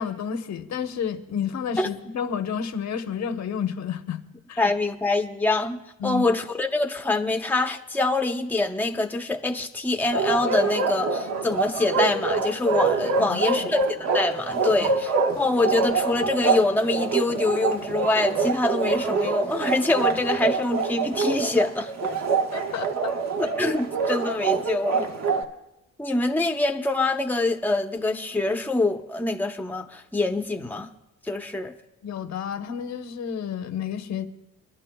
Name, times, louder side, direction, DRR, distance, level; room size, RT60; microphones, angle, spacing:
voice 1, 0.0-4.2 4.5-4.6 6.0-6.3 13.2-13.7 14.8-14.9 22.5-23.1 32.0-34.3, left 7 dB, 65° left, 1.0 m, -30 dB
voice 2, 4.6-22.1 23.4-25.1 26.0-30.9 31.2-31.7, left 2 dB, 5° left, 0.8 m, -25 dB
Bark, 10.1-25.4, right 4 dB, 60° right, 1.3 m, -25 dB
26.0 x 11.5 x 2.3 m
cardioid pair, 90°, 30 cm